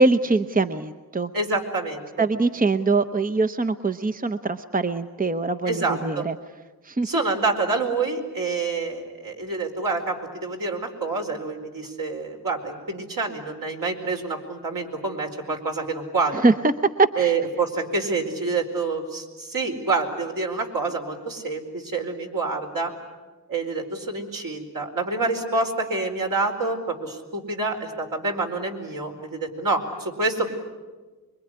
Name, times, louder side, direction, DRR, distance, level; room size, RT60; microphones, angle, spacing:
voice 1, 0.0-1.3 2.2-6.3 6.8-7.1 16.3-16.7 17.0-17.3, right 3 dB, 25° right, 9 dB, 0.9 m, -22 dB
voice 2, 1.3-2.1 5.7-6.3 7.0-16.4 17.2-22.9 23.5-30.5, right 3 dB, 65° right, 2 dB, 4.6 m, -27 dB
25.0 x 23.0 x 9.9 m, 1.3 s
cardioid pair, 80°, 36 cm